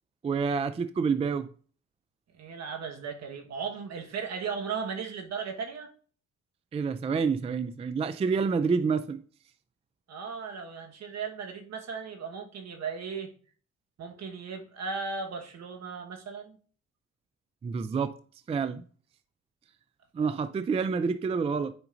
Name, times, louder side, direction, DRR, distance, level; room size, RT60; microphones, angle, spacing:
voice 1, 0.2-1.5 6.7-9.2 17.6-18.2 18.5-18.8 20.1-21.7, right 5 dB, 20° right, 0.3 m, -28 dB
voice 2, 2.3-5.9 10.1-13.3 14.0-16.6, right 5 dB, 60° right, 1.4 m, -36 dB
9.0 x 5.1 x 2.6 m
cardioid pair, 90°, 30 cm